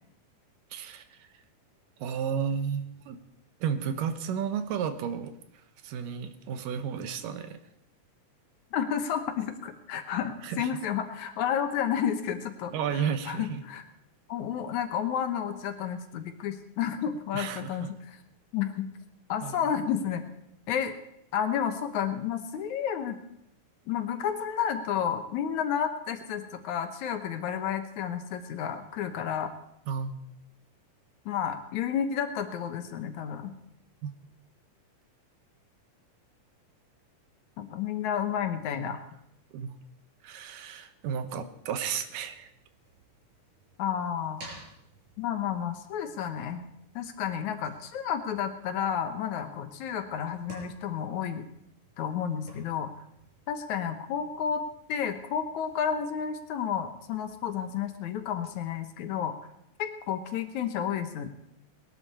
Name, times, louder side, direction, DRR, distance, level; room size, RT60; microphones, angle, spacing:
voice 1, 0.7-1.3 2.0-3.2 3.6-5.3 5.8-7.6 10.4-10.7 12.7-13.6 17.3-17.9 19.4-19.6 29.9-30.2 34.0-34.1 38.8-39.0 39.5-39.7 40.2-42.5, right 7 dB, 85° right, 9 dB, 2.6 m, -33 dB
voice 2, 8.7-13.8 14.3-18.2 18.5-18.9 19.3-20.2 20.7-21.0 21.3-23.2 23.9-29.5 31.3-33.5 37.6-39.0 43.8-44.4 45.2-46.6 47.0-51.4 52.0-52.9 53.5-54.6 54.9-59.3 59.8-61.3, left 8 dB, 70° left, 7 dB, 2.3 m, -31 dB
sound 1, 42.2-58.9, right 2 dB, 65° right, 7.0 m, -55 dB
20.5 x 11.5 x 4.3 m, 0.80 s
omnidirectional pair, 3.8 m